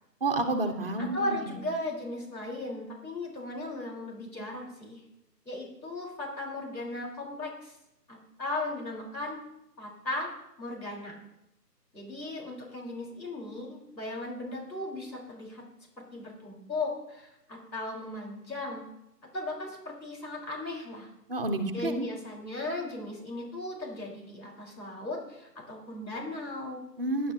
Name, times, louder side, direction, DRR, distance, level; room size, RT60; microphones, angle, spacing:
voice 1, 0.2-1.4 21.3-22.1 27.0-27.3, right 2 dB, 35° right, 5 dB, 1.2 m, -29 dB
voice 2, 1.1-5.0 5.4-7.8 8.1-9.4 9.8-10.3 10.6-11.2 11.9-15.6 16.0-18.8 19.3-21.1 21.7-26.8, left 2 dB, 85° left, -2 dB, 4.8 m, -37 dB
18.5 x 11.0 x 2.9 m, 0.86 s
figure-of-eight pair, 160°, 50 cm